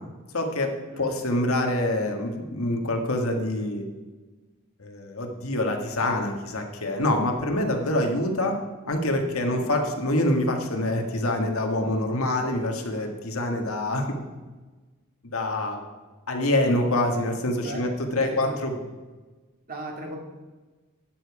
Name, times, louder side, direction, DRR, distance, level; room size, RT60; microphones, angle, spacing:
voice 1, 0.3-3.9 4.8-8.6 8.9-14.1 15.2-15.8 16.3-18.7, left 1 dB, 80° left, 3 dB, 1.7 m, -26 dB
voice 2, 17.6-18.6 19.7-20.2, right 1 dB, 45° right, 0 dB, 2.3 m, -37 dB
12.0 x 9.1 x 4.9 m, 1.3 s
head